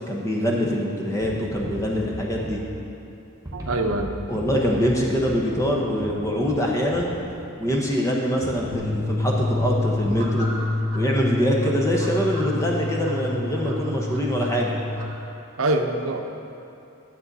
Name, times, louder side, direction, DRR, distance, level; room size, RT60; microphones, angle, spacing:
voice 1, 0.1-2.6 4.3-7.1 7.6-10.5 10.9-14.7, equal, 15° left, -2 dB, 1.0 m, -24 dB
sound 1, 1.2-3.1 3.4-7.9 8.4-10.3, equal, 15° right, 1.1 m, -38 dB
voice 2, 3.5-4.1 5.9-6.2 15.6-16.2, right 2 dB, 70° right, 4 dB, 0.7 m, -25 dB
sound 2, 8.7-15.0, left 2 dB, 85° left, 1.4 m, -27 dB
sound 3, 10.0-11.0 11.6-13.2 13.6-15.1, right 1 dB, 50° right, 1.6 m, -39 dB
12.0 x 7.6 x 4.1 m, 2.7 s
head